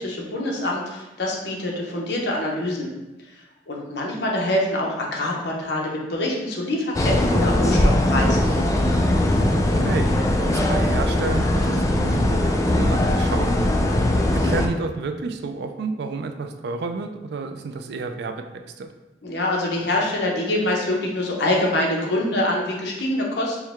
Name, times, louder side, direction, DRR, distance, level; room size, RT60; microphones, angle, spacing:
voice 1, 0.0-2.9 3.7-8.5 19.2-23.6, left 1 dB, 65° left, -2 dB, 0.8 m, -25 dB
sound 1, 6.9-14.7, left 1 dB, 20° left, 0.3 m, -20 dB
voice 2, 9.3-12.4 12.7-13.5 14.3-18.4 18.8-18.9, right 4 dB, 65° right, 7 dB, 0.4 m, -30 dB
4.6 x 2.2 x 3.4 m, 1.0 s
head